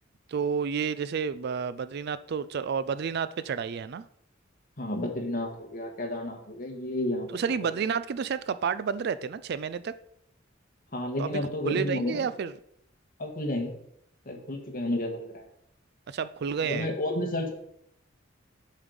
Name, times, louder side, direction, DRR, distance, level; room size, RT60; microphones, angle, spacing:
voice 1, 0.3-4.1 7.3-9.9 11.2-12.5 16.1-16.9, right 6 dB, 55° right, 15 dB, 0.4 m, -30 dB
voice 2, 4.8-7.3 10.9-12.2 13.2-13.7 14.3-15.4 16.6-17.5, left 1 dB, 45° left, 2 dB, 1.7 m, -31 dB
7.1 x 6.5 x 5.2 m, 0.72 s
head